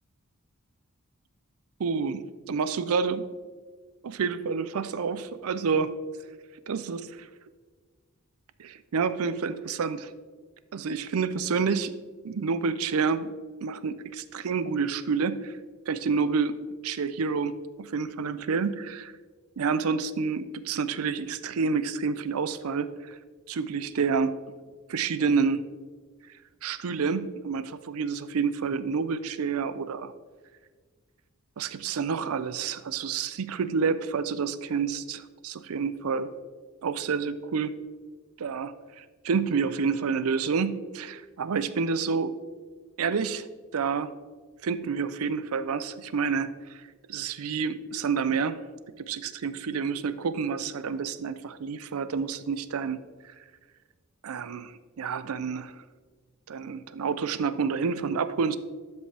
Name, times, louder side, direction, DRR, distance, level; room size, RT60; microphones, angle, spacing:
voice 1, 1.8-3.3 4.0-5.9 6.7-7.3 8.6-10.1 10.7-11.9 12.2-13.3 13.6-15.6 15.9-16.6 16.8-19.1 19.6-23.2 23.5-24.3 24.9-25.6 26.6-30.1 31.6-36.3 36.8-37.7 38.4-42.4 43.0-43.5 43.7-44.1 44.6-48.6 49.0-53.0 54.2-55.8 56.5-58.6, right 5 dB, 70° right, 14 dB, 0.5 m, -29 dB
12.0 x 5.4 x 3.4 m, 1.5 s
head